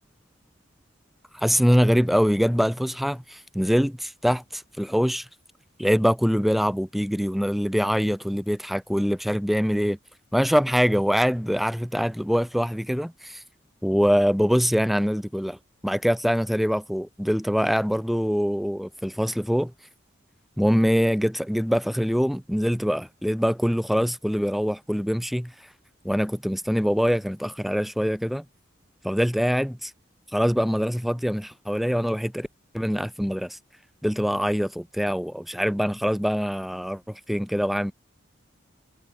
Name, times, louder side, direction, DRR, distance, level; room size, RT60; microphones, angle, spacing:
voice 1, 1.3-5.2 5.8-10.0 10.3-13.4 13.8-15.6 15.8-19.7 20.6-25.5 26.0-28.4 29.0-29.9 30.3-32.5 32.7-33.6 34.0-37.9, equal, ahead, 3.4 m, -24 dB
head